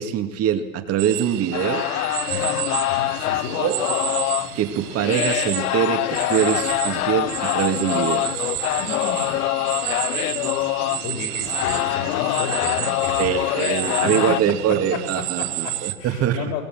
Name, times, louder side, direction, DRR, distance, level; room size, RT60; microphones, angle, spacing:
voice 1, 0.0-1.9 3.6-3.9 4.5-8.3 13.2-16.4, right 9 dB, 35° right, 6 dB, 2.3 m, -23 dB
sound 1, 1.0-15.9, right 16 dB, 50° right, 1.7 m, -31 dB
sound 2, 1.5-14.4, left 16 dB, 85° left, 0.6 m, -24 dB
voice 2, 2.3-3.7 8.8-9.5 11.0-13.6 14.0-14.3 14.7-15.0 15.4-16.7, left 5 dB, 50° left, 3 dB, 5.3 m, -33 dB
22.5 x 17.0 x 7.8 m, 1.1 s
hypercardioid pair, 125°, 43 cm